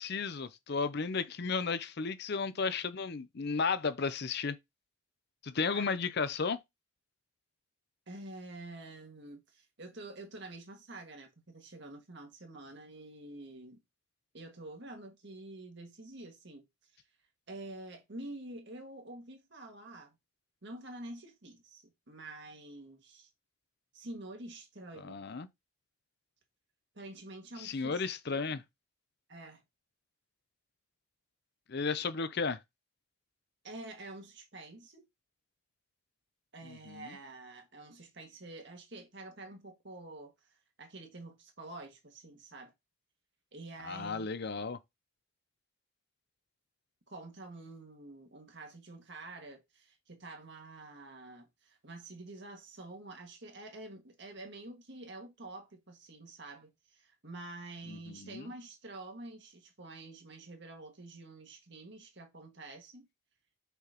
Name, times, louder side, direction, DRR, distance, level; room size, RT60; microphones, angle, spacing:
voice 1, 0.0-4.6 5.4-6.6 25.0-25.5 27.6-28.6 31.7-32.6 36.6-37.1 43.8-44.8 57.9-58.5, left 5 dB, 50° left, 0.5 m, -34 dB
voice 2, 8.1-13.8 14.3-16.7 16.9-17.0 17.5-20.2 20.6-23.3 23.9-25.2 27.0-28.1 29.3-29.6 33.6-35.0 36.5-40.3 40.8-42.7 43.5-44.3 47.1-63.1, right 2 dB, 55° right, 1.8 m, -48 dB
6.0 x 5.7 x 2.9 m
head